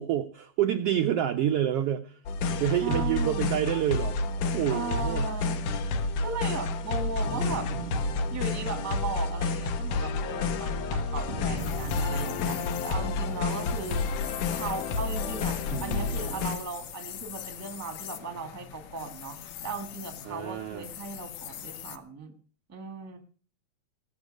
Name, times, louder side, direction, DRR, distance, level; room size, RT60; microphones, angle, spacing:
voice 1, 0.0-2.2 2.5-5.3 15.6-16.2 20.3-20.8, right 11 dB, 80° right, 7 dB, 1.3 m, -28 dB
Synthwave Loop, 2.3-16.6, left 3 dB, 85° left, 2.7 m, -30 dB
voice 2, 2.8-3.5 4.7-5.6 6.2-7.7 8.3-14.1 14.5-22.3 22.7-23.2, right 3 dB, 10° right, 7 dB, 0.6 m, -37 dB
sound 1, 7.2-10.8 11.3-14.6, right 3 dB, 45° right, 0.8 m, -41 dB
sound 2, 11.6-22.0, left 10 dB, 70° left, 2.0 m, -42 dB
19.0 x 7.3 x 6.4 m, 0.42 s
omnidirectional pair, 3.6 m